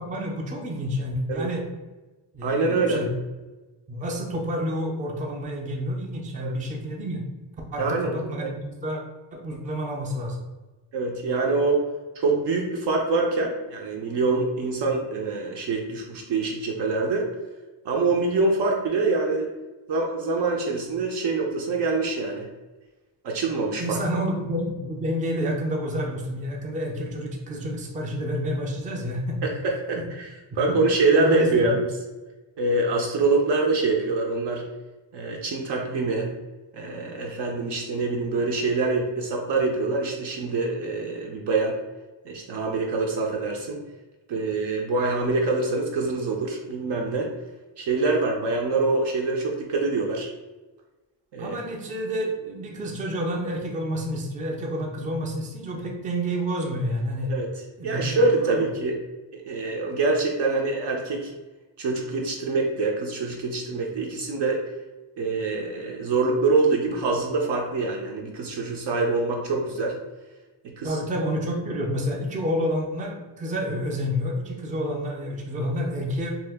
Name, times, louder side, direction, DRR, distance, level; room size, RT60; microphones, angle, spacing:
voice 1, 0.0-1.6 2.3-3.1 3.9-7.2 7.7-9.0 9.3-10.4 23.8-29.4 30.0-30.1 30.7-30.8 31.1-31.7 51.4-57.3 57.8-58.6 70.8-76.3, equal, 20° right, 0 dB, 0.4 m, -29 dB
voice 2, 2.4-3.1 6.4-6.6 7.8-8.5 10.9-11.8 12.2-17.3 17.8-19.5 19.9-22.5 23.2-24.0 29.4-30.3 30.6-31.9 32.6-34.6 35.1-36.3 36.7-41.8 42.3-43.8 44.3-47.3 47.8-50.3 51.3-51.6 57.3-57.5 57.8-58.9 59.3-61.3 61.8-64.6 65.2-70.0 70.6-71.0, right 3 dB, 65° right, 0 dB, 0.6 m, -25 dB
2.8 x 2.4 x 3.4 m, 1.2 s
wide cardioid pair, 150°, 45 cm